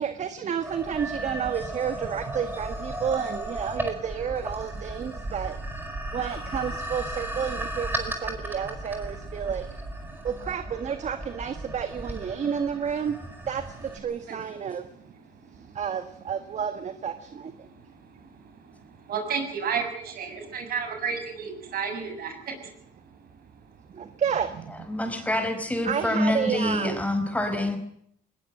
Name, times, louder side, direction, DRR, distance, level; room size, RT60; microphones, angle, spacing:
voice 1, 0.0-5.6 6.1-9.8 10.2-13.1 13.4-14.8 15.7-17.7 23.9-24.9 25.8-27.0, right 7 dB, 45° right, 10 dB, 1.6 m, -31 dB
sound 1, 0.6-14.0, right 1 dB, 10° right, 4.8 m, -35 dB
voice 2, 19.1-22.5, right 6 dB, 60° right, 6 dB, 7.3 m, -31 dB
voice 3, 24.9-27.8, left 1 dB, 10° left, 7 dB, 5.2 m, -26 dB
20.5 x 19.5 x 7.8 m, 0.69 s
cardioid pair, 110°, 17 cm